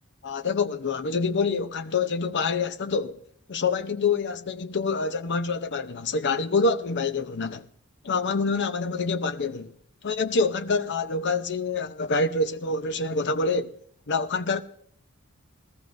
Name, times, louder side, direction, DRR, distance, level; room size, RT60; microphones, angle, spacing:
voice 1, 0.2-3.1 3.5-7.6 8.0-9.7 10.0-13.8 14.1-14.6, left 4 dB, 55° left, 0.7 m, -26 dB
21.5 x 14.0 x 2.6 m
head